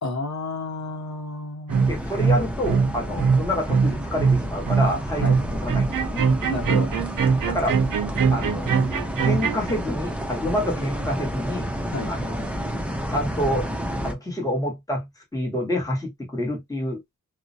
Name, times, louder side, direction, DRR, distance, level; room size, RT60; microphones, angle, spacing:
voice 1, 0.0-1.9 3.2-3.3 5.2-5.3 6.5-6.9 11.9-12.1, left 2 dB, 60° left, 0.7 m, -31 dB
sound 1, 1.7-14.1, equal, 5° right, 0.4 m, -30 dB
sound 2, 1.7-9.7, right 5 dB, 75° right, 0.5 m, -22 dB
voice 2, 1.9-6.2 7.5-7.8 8.3-8.7 9.2-11.7 12.1-12.5 13.1-13.7 14.0-15.1 15.3-17.0, left 1 dB, 10° left, 1.0 m, -28 dB
2.4 x 2.0 x 2.6 m
wide cardioid pair, 105°, 32 cm